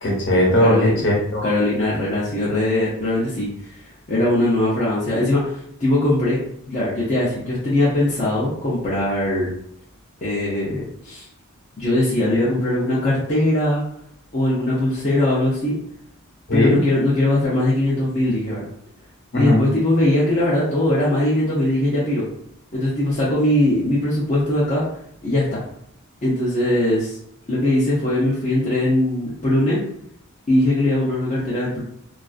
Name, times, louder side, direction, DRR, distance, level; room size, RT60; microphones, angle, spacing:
voice 1, 0.0-1.5 16.5-16.8 19.3-19.6, left 1 dB, 55° left, -3 dB, 0.9 m, -18 dB
voice 2, 0.6-1.0 1.4-3.5 4.1-6.4 6.7-9.5 10.2-11.3 11.8-13.8 14.3-15.8 16.5-18.7 19.4-22.2 22.7-24.9 25.2-25.6 26.2-27.2 27.5-29.8 30.5-31.8, left 1 dB, 35° left, -7 dB, 0.5 m, -20 dB
2.3 x 2.3 x 2.4 m, 0.71 s
head